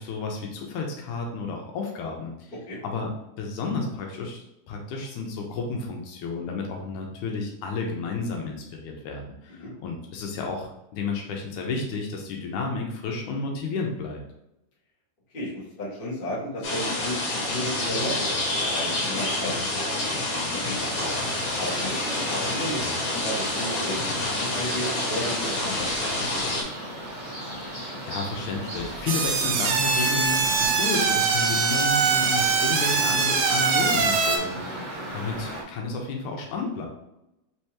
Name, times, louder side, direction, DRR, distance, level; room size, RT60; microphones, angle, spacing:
voice 1, 0.0-2.5 2.8-3.1 3.4-14.2 27.7-36.9, left 3 dB, 80° left, 1 dB, 2.1 m, -32 dB
voice 2, 15.3-18.4 18.7-19.5 20.3-21.1 21.6-25.9 26.2-26.7, equal, 30° left, -7 dB, 0.9 m, -34 dB
sound 1, 16.6-26.6, left 2 dB, 60° left, 2.1 m, -28 dB
sound 2, 20.8-35.6, right 1 dB, 35° right, 0.7 m, -36 dB
sound 3, 29.1-34.4, right 5 dB, 75° right, 1.8 m, -23 dB
5.4 x 3.3 x 2.9 m, 0.87 s
omnidirectional pair, 3.6 m